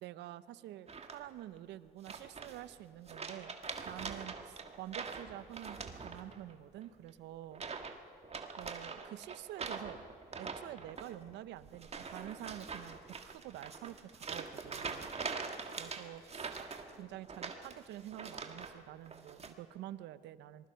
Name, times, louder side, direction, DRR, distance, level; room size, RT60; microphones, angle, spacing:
voice 1, 0.0-3.5 3.9-7.6 8.6-10.0 10.4-15.1 15.8-16.5 16.9-20.7, right 13 dB, 85° right, 16 dB, 0.7 m, -48 dB
sound 1, 0.9-1.4 2.0-2.7 3.1-6.5 6.8-7.1 7.5-8.0 8.2-18.7 19.1-19.5, right 4 dB, 35° right, 1.9 m, -44 dB
25.5 x 20.5 x 5.7 m, 2.3 s
cardioid pair, 85°, 18 cm